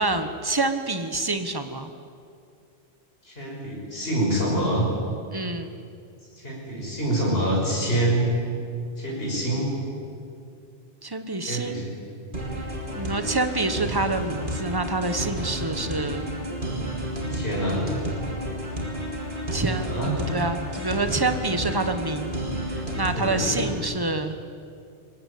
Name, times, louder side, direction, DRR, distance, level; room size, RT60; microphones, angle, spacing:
voice 1, 0.0-1.9 5.3-5.7 11.0-11.9 12.9-16.3 19.5-22.3 23.0-24.4, right 2 dB, 20° right, 8 dB, 1.3 m, -27 dB
voice 2, 3.3-4.9 6.4-8.3 9.0-9.7 11.5-11.9 17.3-17.9 19.9-20.1 23.1-23.5, right 1 dB, 60° left, -3 dB, 6.3 m, -26 dB
sound 1, 12.3-23.8, right 1 dB, 50° right, 3.2 m, -31 dB
22.5 x 19.0 x 8.5 m, 2.4 s
omnidirectional pair, 1.1 m